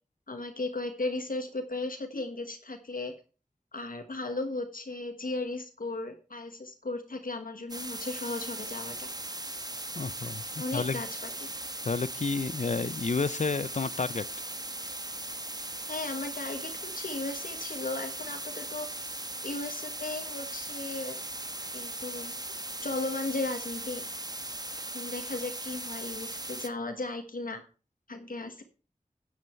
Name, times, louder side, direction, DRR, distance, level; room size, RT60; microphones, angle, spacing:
voice 1, 0.3-3.1 3.7-9.1 10.6-11.5 15.9-21.2 21.7-22.3 22.8-24.0 24.9-27.6 28.1-28.6, left 2 dB, 80° left, 1.5 m, -36 dB
sound 1, 7.7-26.7, right 2 dB, 30° right, 1.2 m, -38 dB
voice 2, 10.0-11.0 11.8-14.3, left 4 dB, 55° left, 0.6 m, -30 dB
9.6 x 9.6 x 4.5 m
wide cardioid pair, 45°, 14 cm